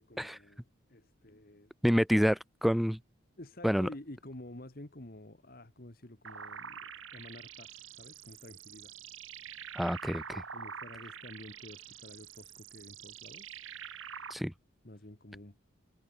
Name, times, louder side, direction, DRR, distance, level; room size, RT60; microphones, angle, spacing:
voice 1, 0.0-1.7 3.4-9.0 10.5-13.6 14.8-15.6, left 1 dB, 45° left, 1.8 m, -50 dB
voice 2, 1.8-3.0 3.6-3.9 9.8-10.4 14.3-14.5, equal, ahead, 0.3 m, -28 dB
sound 1, 6.2-14.3, right 7 dB, 75° right, 3.1 m, -46 dB
head